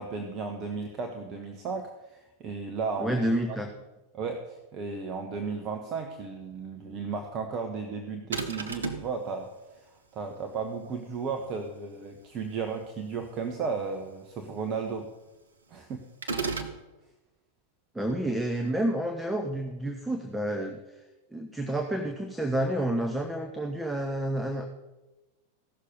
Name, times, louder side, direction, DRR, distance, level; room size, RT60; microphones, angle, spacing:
voice 1, 0.0-3.2 3.5-3.6 4.1-15.1 15.7-16.0, right 5 dB, 30° right, 4 dB, 1.2 m, -34 dB
voice 2, 3.0-3.7 17.9-20.8 21.3-24.7, right 1 dB, 5° right, 4 dB, 1.0 m, -29 dB
sound 1, 8.3-9.1 16.2-16.8, right 4 dB, 70° right, 1.1 m, -32 dB
16.0 x 6.6 x 5.4 m, 1.1 s
figure-of-eight pair, 90°, 0 cm